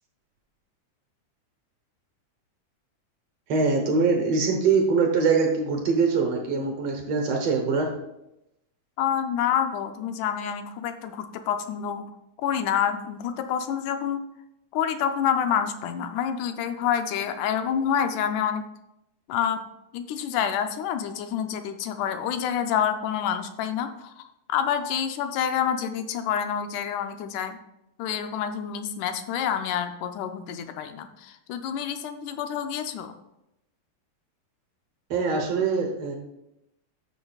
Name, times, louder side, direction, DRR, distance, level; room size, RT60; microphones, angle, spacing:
voice 1, 3.5-7.9 35.1-36.2, right 4 dB, 60° right, 2 dB, 1.9 m, -23 dB
voice 2, 9.0-12.1 12.4-14.2 14.7-18.6 19.3-19.6 19.9-27.6 28.0-33.2, left 8 dB, 85° left, 8 dB, 2.1 m, -28 dB
14.0 x 6.3 x 2.3 m, 0.87 s
omnidirectional pair, 3.5 m